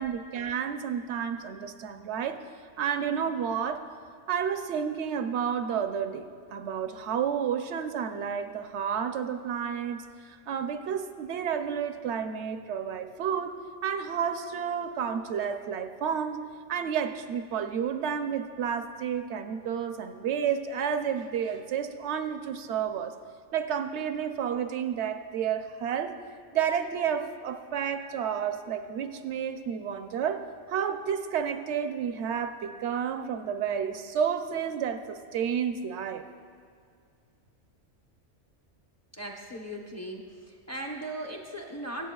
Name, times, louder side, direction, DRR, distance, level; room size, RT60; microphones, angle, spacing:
voice 1, 0.0-2.4 2.8-3.8 4.3-13.5 13.8-16.4 16.7-23.1 23.5-26.1 26.5-36.3, right 7 dB, 70° right, 8 dB, 0.9 m, -31 dB
voice 2, 39.2-40.3 40.7-42.1, right 1 dB, 15° left, 0 dB, 0.7 m, -37 dB
23.0 x 8.0 x 2.3 m, 2.3 s
omnidirectional pair, 1.2 m